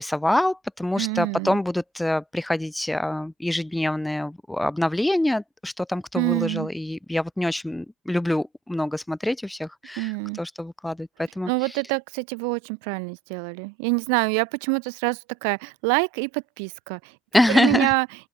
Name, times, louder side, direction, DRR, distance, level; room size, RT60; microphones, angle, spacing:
voice 1, 0.0-10.1 10.4-11.5 17.3-17.9, left 1 dB, 5° left, 0.4 m, -25 dB
voice 2, 1.0-1.6 6.2-6.7 10.0-10.4 11.5-17.2 17.5-18.1, right 37 dB, 70° right, 0.3 m, -26 dB
hypercardioid pair, 70°, 0 cm